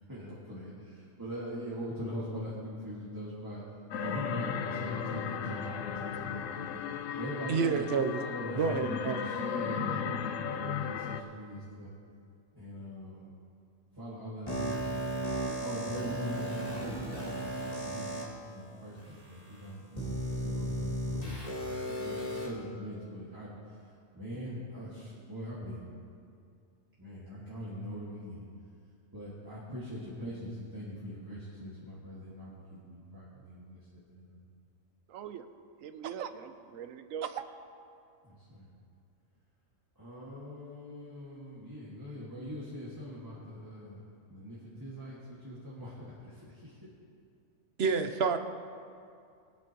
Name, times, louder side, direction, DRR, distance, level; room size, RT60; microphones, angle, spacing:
voice 1, 0.1-0.9 1.2-3.6 4.0-6.7 7.2-7.8 8.1-11.9 12.5-13.2 14.0-15.2 15.6-22.2 22.4-23.5 24.1-25.9 27.0-28.4 29.1-33.8 34.1-34.4 38.3-38.7 40.0-44.0 44.3-45.2 45.4-46.7, equal, 15° right, -8 dB, 1.8 m, -42 dB
sound 1, 3.9-11.2, left 7 dB, 75° left, 1.0 m, -35 dB
voice 2, 7.5-8.2 8.5-9.3 47.8-48.4, right 5 dB, 60° right, 7 dB, 0.9 m, -29 dB
sound 2, 14.5-18.2 19.0-19.1 20.0-22.5, right 1 dB, 30° left, 2.3 m, -35 dB
voice 3, 35.1-35.5 35.8-37.5, right 8 dB, 80° right, 9 dB, 1.0 m, -40 dB
22.0 x 8.7 x 3.0 m, 2.4 s
omnidirectional pair, 1.4 m